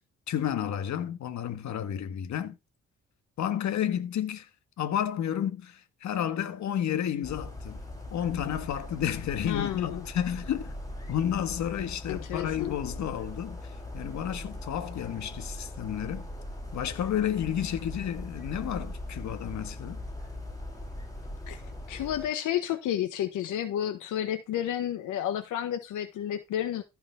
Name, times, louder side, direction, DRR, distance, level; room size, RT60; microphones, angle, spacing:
voice 1, 0.3-2.6 3.4-4.5 4.8-7.8 8.1-10.7 11.1-16.3 16.7-20.0, left 10 dB, 70° left, 1.6 m, -31 dB
sound 1, 7.2-22.3, left 1 dB, 10° left, 6.6 m, -40 dB
voice 2, 9.4-10.1 12.1-12.8 21.5-21.6 21.9-26.8, left 11 dB, 90° left, 1.4 m, -31 dB
15.0 x 5.4 x 3.5 m
cardioid pair, 90°, 30 cm